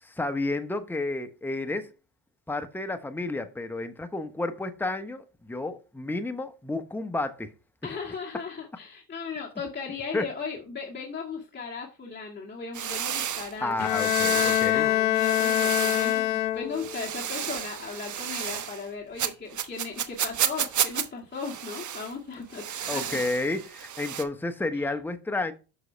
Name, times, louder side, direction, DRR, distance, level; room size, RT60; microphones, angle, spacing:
voice 1, 0.0-1.9 2.5-7.5 7.8-7.9 10.1-10.3 13.6-14.9 22.9-25.5, left 2 dB, 5° left, 1.0 m, -31 dB
voice 2, 7.8-13.8 14.3-23.2 24.7-24.9, left 5 dB, 20° left, 1.9 m, -37 dB
sound 1, 12.7-14.8 15.1-16.2 16.7-18.9 19.2-21.1 21.4-22.1 22.5-24.2, right 9 dB, 40° right, 1.1 m, -32 dB
Bowed string instrument, 13.8-17.0, left 14 dB, 85° left, 0.8 m, -24 dB
7.8 x 6.3 x 3.3 m
supercardioid pair, 85°, 48 cm